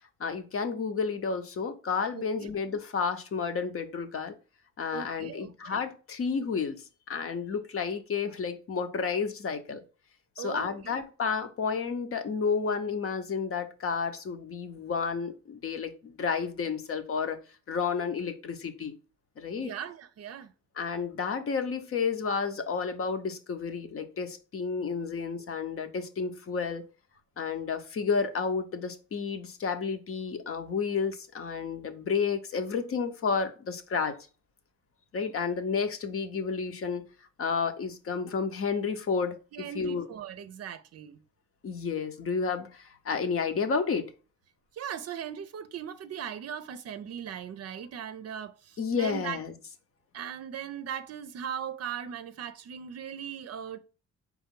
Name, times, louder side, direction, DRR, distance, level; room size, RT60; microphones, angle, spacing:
voice 1, 0.2-4.3 4.8-9.8 10.4-17.4 17.7-18.9 19.4-19.7 20.8-26.8 27.4-34.2 35.1-37.0 37.4-40.0 41.6-44.1 48.8-49.5, left 5 dB, 45° left, 0.8 m, -31 dB
voice 2, 2.1-2.5 4.9-5.8 10.4-11.0 19.6-20.5 39.5-41.2 44.7-49.4 50.1-53.8, right 8 dB, 55° right, 0.5 m, -39 dB
4.5 x 3.1 x 3.7 m
cardioid pair, 90°, 30 cm